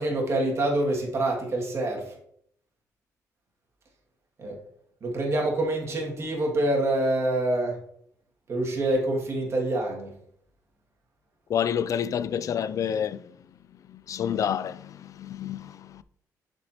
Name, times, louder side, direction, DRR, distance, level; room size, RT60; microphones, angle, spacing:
voice 1, 0.0-2.1 4.4-4.6 5.0-7.8 8.5-10.1, right 1 dB, 45° right, 2.1 m, -26 dB
voice 2, 11.5-13.4 13.7-16.0, left 8 dB, 55° left, 0.3 m, -29 dB
7.1 x 6.2 x 2.9 m
cardioid pair, 110°, 7 cm